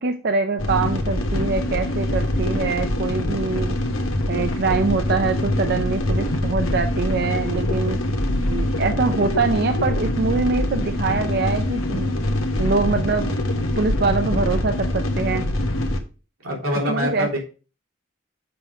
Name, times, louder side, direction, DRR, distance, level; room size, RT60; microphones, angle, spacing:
voice 1, 0.0-3.8 4.3-8.0 8.5-12.1 12.6-13.4 13.8-15.4 16.9-17.4, right 4 dB, 50° right, 7 dB, 0.5 m, -24 dB
sound 1, 0.6-16.0, left 1 dB, 80° left, 1.3 m, -24 dB
voice 2, 16.4-17.4, equal, 90° right, -2 dB, 3.3 m, -24 dB
6.9 x 5.4 x 4.6 m, 0.34 s
head